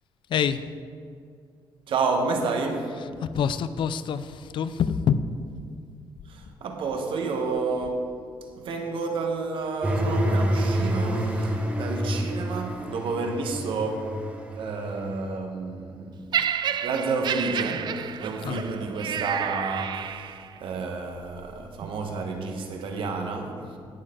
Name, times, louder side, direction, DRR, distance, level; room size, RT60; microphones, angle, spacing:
voice 1, 0.3-0.8 2.8-5.5 18.4-18.6, left 7 dB, 60° left, 0.4 m, -27 dB
voice 2, 1.9-3.0 6.3-8.2 8.6-14.2 14.6-16.3 16.8-20.2 20.6-23.7, right 3 dB, 65° right, 1.2 m, -30 dB
sound 1, 9.8-15.3, right 1 dB, 15° right, 1.1 m, -27 dB
Laughter, 16.3-20.6 21.4-21.5, right 8 dB, 50° right, 0.4 m, -30 dB
17.5 x 6.5 x 3.8 m
cardioid pair, 130°, 9 cm